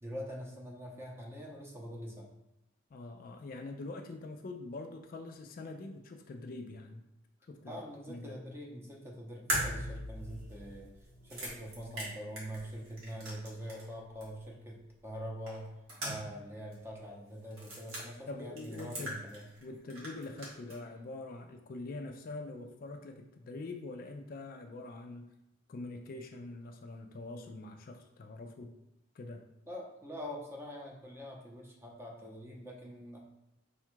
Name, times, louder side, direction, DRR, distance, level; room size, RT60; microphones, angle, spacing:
voice 1, 0.0-2.3 7.6-10.9 11.2-15.7 16.0-19.5 29.7-33.2, equal, 10° right, -1 dB, 0.7 m, -44 dB
voice 2, 2.9-7.0 7.5-7.8 8.1-8.4 18.3-19.2 19.6-25.3 25.7-28.7 29.1-29.4, left 2 dB, 45° left, 5 dB, 0.3 m, -44 dB
sound 1, 9.5-13.9 14.2-14.3 15.5-16.5 16.7-16.8 17.5-18.0 18.6-19.6 19.9-20.8, equal, 90° right, 1.5 m, -39 dB
4.7 x 2.3 x 4.5 m, 0.91 s
head